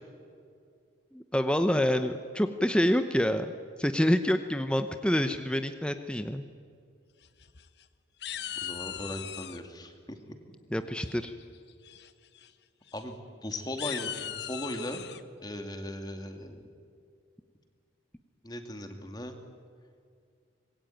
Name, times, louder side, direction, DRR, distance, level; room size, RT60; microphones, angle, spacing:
voice 1, 1.1-3.5 3.8-6.4 10.7-11.3, equal, 5° left, 8 dB, 0.8 m, -27 dB
sound 1, 7.2-7.8 8.2-9.6 11.0-11.4 11.8-12.1 12.4-12.5 12.9-13.0 13.6-15.2, left 10 dB, 60° left, 1.1 m, -39 dB
voice 2, 8.6-10.2 12.9-13.1 13.4-15.0 15.4-16.7 18.4-19.3, left 1 dB, 20° left, 6 dB, 2.3 m, -38 dB
26.0 x 21.5 x 9.3 m, 2.3 s
head